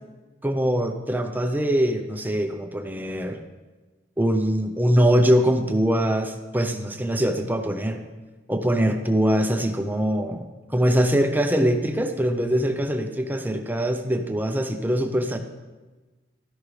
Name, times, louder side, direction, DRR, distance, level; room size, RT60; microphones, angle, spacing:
voice 1, 0.4-3.4 4.2-8.0 8.5-15.4, equal, 10° right, 6 dB, 0.6 m, -23 dB
12.5 x 11.0 x 3.3 m, 1.2 s
head